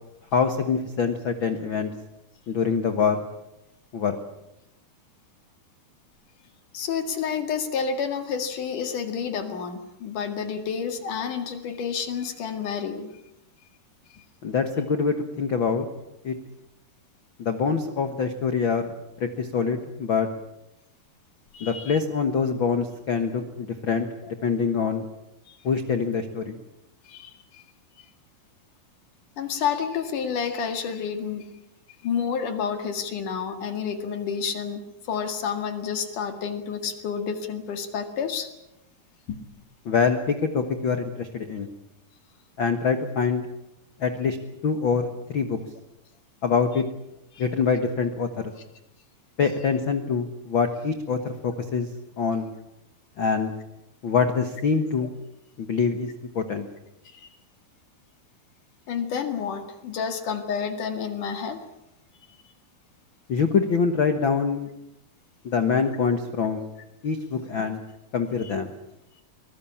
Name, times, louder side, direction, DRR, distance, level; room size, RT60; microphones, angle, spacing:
voice 1, 0.3-1.9 2.5-3.2 3.9-4.2 14.4-15.9 16.2-16.3 17.4-18.9 19.2-20.3 21.6-25.0 25.6-26.6 39.8-41.7 42.6-43.4 44.0-44.4 44.6-45.6 46.4-46.8 47.4-48.5 49.4-51.9 52.2-52.5 53.2-53.5 54.0-55.1 55.6-56.1 56.3-56.7 63.3-64.7 65.4-66.6 67.0-67.8 68.1-68.7, left 5 dB, 80° left, 8 dB, 1.0 m, -25 dB
voice 2, 6.7-13.1 14.1-14.2 21.5-22.0 25.5-25.6 27.1-27.6 29.4-31.5 32.0-34.8 35.1-38.5 39.3-39.4 47.3-47.4 57.1-57.3 58.9-61.6, left 6 dB, 60° left, 7 dB, 3.3 m, -29 dB
23.5 x 20.0 x 8.6 m, 0.87 s
omnidirectional pair, 4.5 m